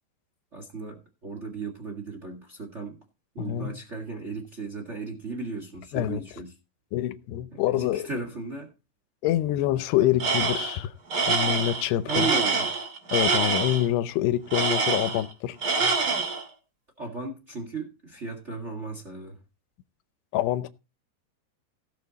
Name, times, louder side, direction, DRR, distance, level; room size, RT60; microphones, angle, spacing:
voice 1, 0.5-3.0 3.3-6.5 7.5-8.7 12.0-12.6 17.0-19.4, right 3 dB, 70° right, 0.6 m, -35 dB
voice 2, 3.4-3.8 5.9-6.2 6.9-8.1 9.2-10.9 11.3-12.3 13.1-15.6 20.3-20.7, left 13 dB, 85° left, 2.8 m, -26 dB
Tools, 10.2-10.8 11.1-13.8 14.5-15.3 15.6-16.4, right 4 dB, 40° right, 2.6 m, -25 dB
17.0 x 6.9 x 4.1 m
omnidirectional pair, 4.7 m